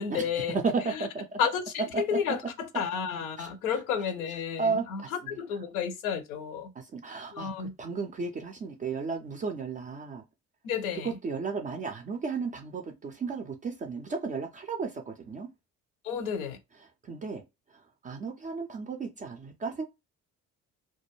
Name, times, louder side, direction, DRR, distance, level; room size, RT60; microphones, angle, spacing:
voice 1, 0.0-0.6 0.8-1.1 1.4-6.7 7.3-7.7 10.6-11.2 16.0-16.6, left 7 dB, 70° left, 0.6 m, -31 dB
voice 2, 0.5-1.4 3.4-3.5 4.6-5.1 6.8-10.2 11.0-15.5 17.0-17.4 17.7-19.9, right 4 dB, 20° right, 0.3 m, -34 dB
2.2 x 2.2 x 2.9 m
figure-of-eight pair, 50°, 46 cm